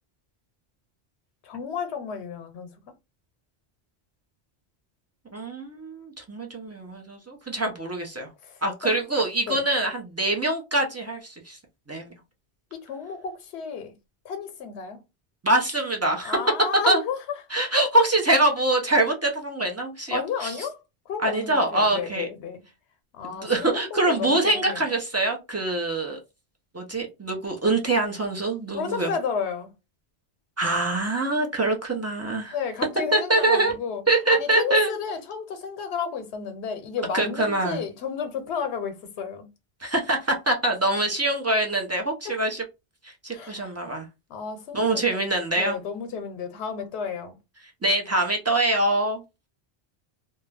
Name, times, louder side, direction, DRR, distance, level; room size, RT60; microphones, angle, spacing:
voice 1, 1.4-2.8 8.4-9.0 9.5-9.7 12.7-13.9 14.2-15.0 16.2-17.2 20.1-20.8 21.1-22.6 23.1-24.9 28.7-29.7 32.5-34.0 34.3-39.5 42.2-42.3 43.3-43.7 44.3-47.4, left 6 dB, 85° left, 0.9 m, -32 dB
voice 2, 5.3-8.3 8.6-11.6 11.9-12.1 15.4-16.4 16.9-17.0 17.5-20.5 21.2-22.3 23.2-26.2 26.7-29.1 30.6-32.5 33.1-33.7 34.1-34.9 37.1-37.8 39.8-42.6 43.0-44.1 44.7-45.8 47.8-49.2, right 2 dB, 25° right, 0.3 m, -24 dB
2.3 x 2.0 x 3.2 m
omnidirectional pair, 1.1 m